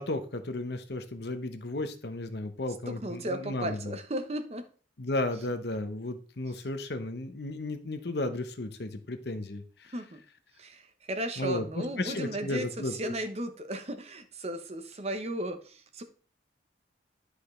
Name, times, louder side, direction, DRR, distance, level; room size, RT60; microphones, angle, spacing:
voice 1, 0.0-3.9 5.0-9.9 11.4-13.1, left 2 dB, 60° left, 8 dB, 0.9 m, -34 dB
voice 2, 2.9-4.6 9.9-10.2 10.6-16.0, right 1 dB, 35° right, 8 dB, 0.8 m, -35 dB
11.0 x 5.0 x 3.2 m, 0.40 s
head